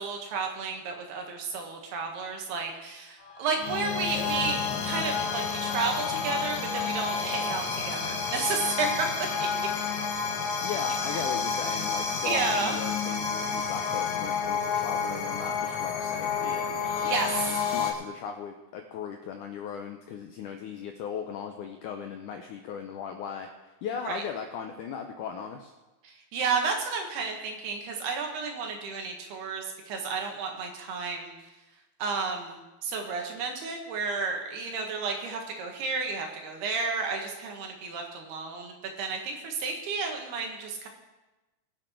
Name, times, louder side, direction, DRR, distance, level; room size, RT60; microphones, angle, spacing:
voice 1, 0.0-4.6 4.8-9.1 11.1-11.2 12.2-12.8 17.0-17.5 24.1-24.2 26.0-31.3 32.0-40.9, right 4 dB, 80° right, 2 dB, 3.6 m, -32 dB
sound 1, 3.2-17.9, left 6 dB, 65° left, 3.0 m, -30 dB
voice 2, 10.6-25.7, left 7 dB, 90° left, 5 dB, 1.8 m, -38 dB
22.5 x 7.7 x 4.5 m, 1.1 s
omnidirectional pair, 4.5 m